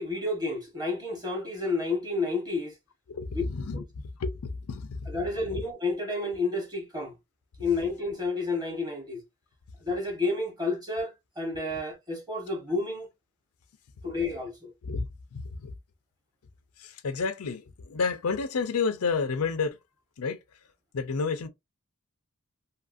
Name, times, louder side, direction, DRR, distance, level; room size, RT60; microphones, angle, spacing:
voice 1, 0.0-2.7 3.7-3.8 5.1-7.1 7.6-9.2 9.8-13.1 14.0-14.7, left 3 dB, 15° right, 1.0 m, -30 dB
voice 2, 3.1-5.1 5.5-5.6 14.8-15.7 16.8-19.8 20.2-20.4 20.9-21.5, left 4 dB, 85° left, 0.5 m, -31 dB
2.8 x 2.5 x 2.4 m
head